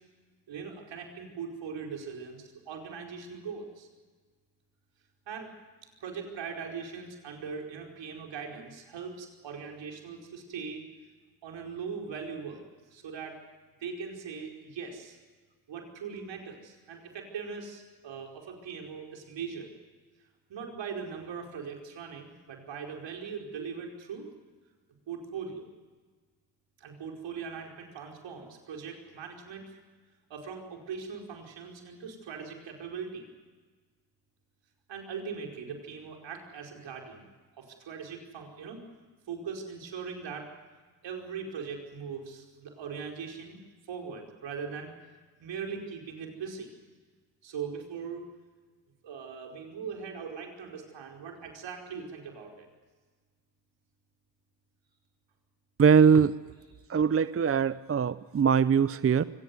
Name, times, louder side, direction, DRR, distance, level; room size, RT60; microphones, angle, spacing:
voice 1, 0.5-3.9 5.3-5.5 6.0-10.9 11.4-13.4 13.8-15.2 15.7-19.7 20.5-24.3 25.1-25.6 26.8-29.8 30.3-33.2 34.9-37.3 37.6-38.8 39.3-40.5 41.0-43.6 43.9-44.9 45.4-46.7 47.4-48.3 49.0-52.7 56.8-56.9, right 6 dB, 70° right, 2 dB, 5.0 m, -40 dB
voice 2, 55.8-56.3 56.9-59.2, right 6 dB, 30° right, 16 dB, 0.7 m, -22 dB
24.0 x 17.5 x 9.6 m, 1.4 s
supercardioid pair, 50°, 45 cm